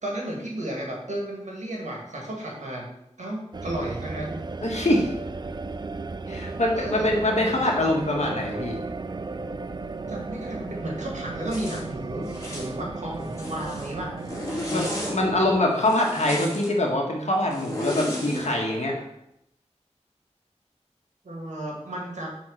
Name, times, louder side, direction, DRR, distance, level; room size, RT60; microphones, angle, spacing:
voice 1, 0.0-2.8 3.2-4.4 6.7-7.1 10.1-14.1 21.2-22.3, right 1 dB, 85° right, -1 dB, 1.8 m, -33 dB
sound 1, 3.5-15.6, right 3 dB, 35° right, 0.4 m, -35 dB
voice 2, 4.6-5.1 6.3-8.8 14.7-18.9, left 1 dB, 70° left, -1 dB, 1.7 m, -24 dB
Zipper (clothing), 11.5-11.8 12.3-12.7 13.2-13.9 14.2-15.2 15.8-16.7 17.5-18.5, left 1 dB, 25° left, 2.2 m, -33 dB
5.9 x 4.2 x 6.2 m, 0.81 s
wide cardioid pair, 55°, 12 cm